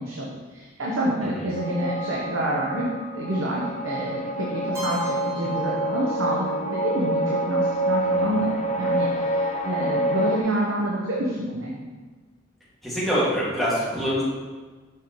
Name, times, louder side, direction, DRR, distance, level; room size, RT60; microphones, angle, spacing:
voice 1, 0.0-2.9 3.1-11.8, right 1 dB, 70° right, -4 dB, 0.9 m, -28 dB
sound 1, 1.5-10.4, right 1 dB, 35° left, 0.5 m, -27 dB
Keyboard (musical), 4.7-6.7, left 1 dB, 15° right, 1.8 m, -38 dB
voice 2, 8.0-8.3 12.8-14.2, equal, ahead, -9 dB, 1.9 m, -25 dB
6.6 x 5.1 x 3.0 m, 1.3 s
head